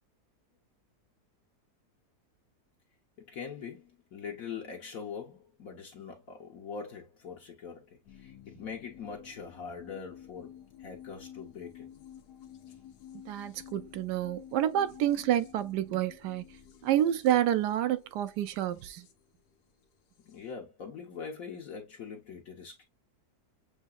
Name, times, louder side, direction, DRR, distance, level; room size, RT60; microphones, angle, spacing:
voice 1, 3.2-12.1 20.3-22.9, left 6 dB, 60° left, 1.4 m, -43 dB
sound 1, 8.0-20.5, left 10 dB, 85° left, 1.3 m, -52 dB
voice 2, 13.3-16.4 16.8-19.1, right 11 dB, 85° right, 1.2 m, -28 dB
7.2 x 2.8 x 2.3 m
omnidirectional pair, 1.8 m